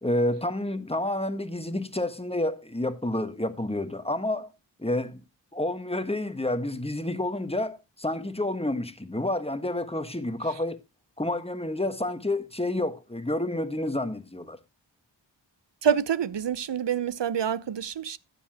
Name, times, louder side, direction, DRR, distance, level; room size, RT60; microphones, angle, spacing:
voice 1, 0.0-4.5 4.8-5.2 5.5-10.8 11.2-14.6, left 1 dB, 10° left, 1.4 m, -29 dB
voice 2, 15.8-18.2, right 8 dB, 65° right, 0.8 m, -27 dB
12.5 x 10.0 x 2.9 m
wide cardioid pair, 50°, 46 cm